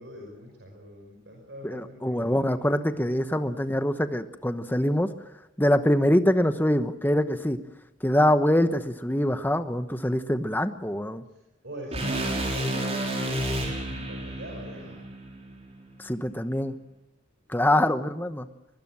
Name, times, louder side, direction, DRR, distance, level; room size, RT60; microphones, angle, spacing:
voice 1, 0.0-3.1 11.6-15.0 17.6-17.9, equal, 65° right, 0 dB, 5.6 m, -43 dB
voice 2, 1.6-5.1 5.6-7.6 8.0-11.2 16.0-16.8 17.5-18.5, left 1 dB, 10° left, 10 dB, 1.1 m, -24 dB
sound 1, 11.9-16.1, right 1 dB, 30° right, 5.7 m, -31 dB
24.0 x 21.5 x 7.6 m, 0.93 s
head